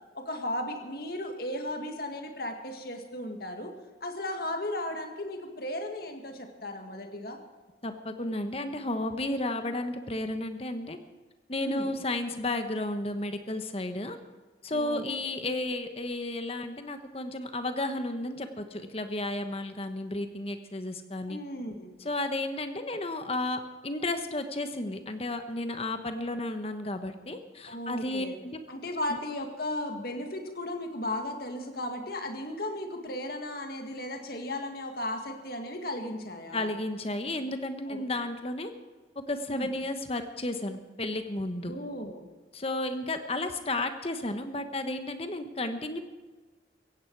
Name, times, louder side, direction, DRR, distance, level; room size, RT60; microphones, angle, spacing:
voice 1, 0.2-3.7 4.0-7.4 11.6-11.9 14.7-15.3 21.3-22.0 27.7-28.4 28.7-36.7 37.9-38.0 39.5-39.7 41.7-42.3, left 1 dB, 55° left, 4 dB, 2.1 m, -35 dB
voice 2, 7.8-11.0 11.5-14.2 14.6-21.4 22.0-28.6 29.1-29.2 36.5-38.7 39.3-41.7 42.5-46.0, left 2 dB, 30° left, 8 dB, 1.2 m, -33 dB
16.5 x 16.0 x 4.8 m, 1.3 s
head